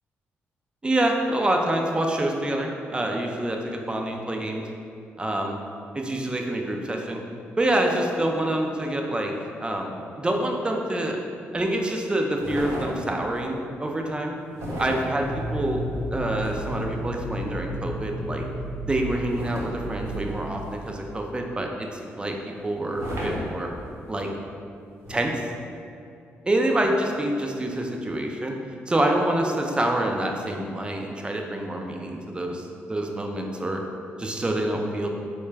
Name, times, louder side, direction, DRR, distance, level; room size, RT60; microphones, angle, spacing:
voice 1, 0.8-4.6 5.2-5.6 6.0-7.2 7.6-9.3 9.6-11.2 11.5-14.4 14.8-15.8 16.1-18.4 18.9-22.4 22.6-23.7 24.1-24.3 25.1-25.4 26.5-28.5 28.9-33.8 34.2-35.1, right 1 dB, 20° right, 2 dB, 0.4 m, -26 dB
sound 1, 12.4-13.3 14.5-16.9 19.3-21.2 22.9-24.1 25.0-25.2, equal, 75° right, 0.8 m, -35 dB
sound 2, 15.2-21.2, right 1 dB, 20° left, 0.8 m, -33 dB
3.7 x 2.2 x 3.2 m, 2.6 s
cardioid pair, 70°, 5 cm